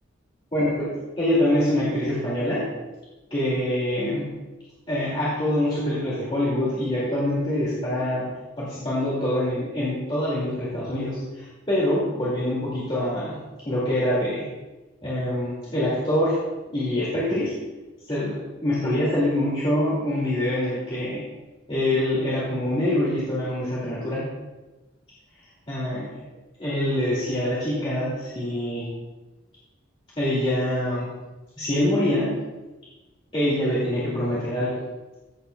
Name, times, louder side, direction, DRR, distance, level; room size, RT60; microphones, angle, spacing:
voice 1, 0.5-0.9 1.2-2.6 3.3-4.3 4.9-8.3 8.6-13.4 13.7-14.4 15.0-16.4 16.7-17.5 18.1-21.2 21.7-24.3 25.7-26.1 26.6-28.9 30.2-31.1 31.6-32.4 33.3-34.8, left 1 dB, 25° left, -8 dB, 2.2 m, -25 dB
15.0 x 8.0 x 2.2 m, 1.1 s
head